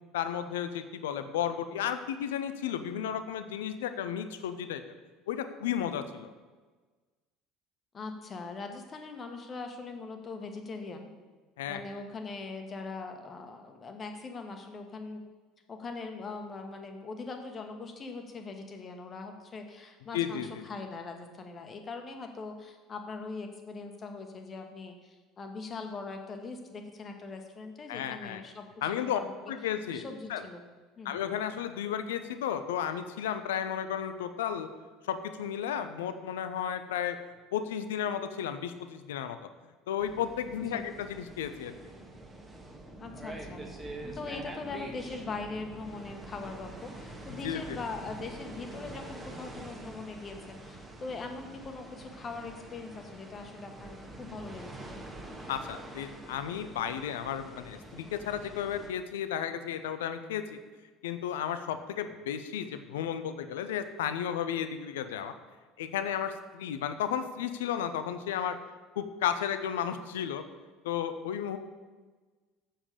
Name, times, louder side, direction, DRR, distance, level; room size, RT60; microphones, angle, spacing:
voice 1, 0.1-4.8 5.3-6.3 11.6-11.8 20.1-20.5 27.9-28.4 28.8-29.2 29.5-30.0 30.3-30.4 31.0-34.7 35.0-37.2 37.5-39.4 39.9-41.7 47.4-47.6 55.5-60.6 61.0-65.4 65.8-68.6 69.0-70.4 70.8-71.6, left 9 dB, 65° left, 10 dB, 0.6 m, -33 dB
voice 2, 7.9-11.1 11.6-15.2 15.7-29.3 29.9-30.6 31.0-31.1 40.7-40.8 43.0-43.6 44.0-55.0, left 3 dB, 30° left, 5 dB, 1.3 m, -41 dB
sound 1, 40.0-58.9, right 2 dB, 15° right, 1.5 m, -45 dB
7.4 x 7.1 x 6.8 m, 1.4 s
figure-of-eight pair, 65°, 0 cm